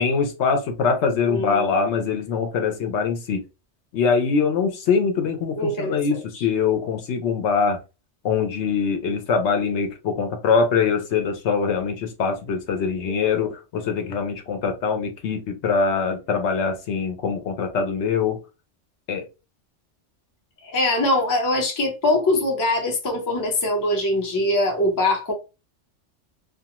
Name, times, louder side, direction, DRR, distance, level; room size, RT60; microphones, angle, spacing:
voice 1, 0.0-3.4 3.9-7.8 8.2-18.4 19.1-19.3, left 5 dB, 70° left, 0.9 m, -23 dB
voice 2, 1.3-1.7 5.6-6.0 13.1-13.5 20.6-25.3, left 1 dB, 25° left, 0.4 m, -23 dB
2.4 x 2.3 x 2.8 m
omnidirectional pair, 1.3 m